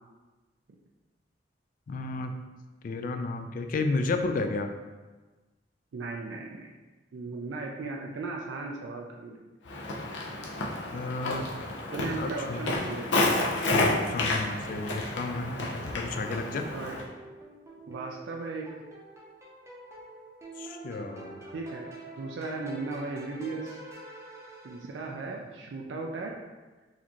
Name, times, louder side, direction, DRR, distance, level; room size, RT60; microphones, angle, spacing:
voice 1, 1.9-2.4 2.8-4.7 10.9-11.5 12.1-12.6 13.7-16.7 20.6-21.4, left 3 dB, 50° left, 6 dB, 0.3 m, -32 dB
voice 2, 5.9-6.7 7.1-9.4 11.9-13.3 16.7-17.0 17.9-18.7 21.5-21.9 22.2-23.8 24.6-26.4, right 3 dB, 80° right, 0 dB, 0.4 m, -36 dB
Walk footsteps, 9.7-17.0, left 2 dB, 90° left, 0.7 m, -30 dB
sound 1, 16.4-25.3, right 2 dB, 15° right, 0.6 m, -47 dB
4.1 x 2.6 x 2.9 m, 1.2 s
head